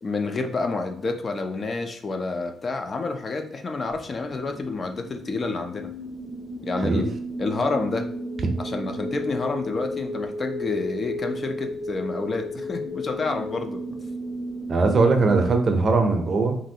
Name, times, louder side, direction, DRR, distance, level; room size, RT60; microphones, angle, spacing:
voice 1, 0.0-5.9 6.6-8.1 8.6-13.8, left 3 dB, 40° left, 6 dB, 0.4 m, -29 dB
sound 1, 3.9-15.7, equal, 65° left, 0.9 m, -33 dB
voice 2, 14.7-16.6, right 3 dB, 45° right, 5 dB, 0.6 m, -20 dB
3.0 x 2.6 x 2.7 m, 0.69 s
cardioid pair, 90°, 0 cm